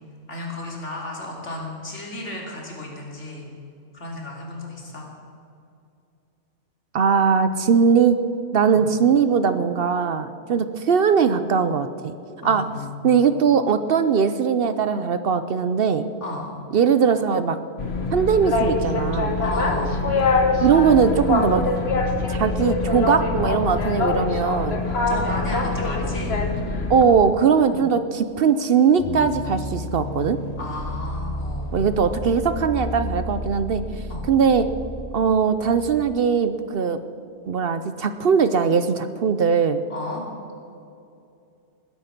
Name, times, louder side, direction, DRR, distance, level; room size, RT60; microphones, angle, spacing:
voice 1, 0.3-3.4 3.9-5.1 8.7-8.9 12.4-13.1 16.2-16.4 19.4-20.0 24.9-26.4 30.6-31.7 34.1-34.3 39.9-40.2, left 2 dB, 75° left, -2 dB, 3.3 m, -33 dB
voice 2, 6.9-8.2 8.5-12.1 12.4-12.6 13.0-16.1 16.7-17.6 18.1-19.4 20.6-21.6 22.3-24.8 26.9-30.4 31.7-33.8 34.2-34.7 35.1-37.0 37.5-39.8, right 6 dB, 60° right, 11 dB, 0.8 m, -20 dB
Boat Water vehicle, 17.8-27.0, left 3 dB, 60° left, 1.5 m, -23 dB
sound 1, 29.0-36.2, left 1 dB, 40° left, 0.8 m, -32 dB
20.5 x 10.0 x 5.9 m, 2.6 s
omnidirectional pair, 1.2 m